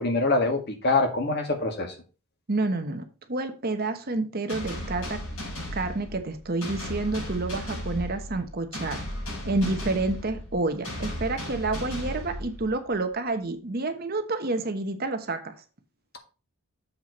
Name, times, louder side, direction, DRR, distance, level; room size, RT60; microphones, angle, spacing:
voice 1, 0.0-1.9, left 3 dB, 50° left, 1.7 m, -24 dB
voice 2, 2.5-5.2 5.7-9.0 9.4-15.5, right 2 dB, 45° right, 1.0 m, -29 dB
sound 1, 4.5-13.0, left 1 dB, 70° left, 4.9 m, -35 dB
7.5 x 4.6 x 5.3 m
head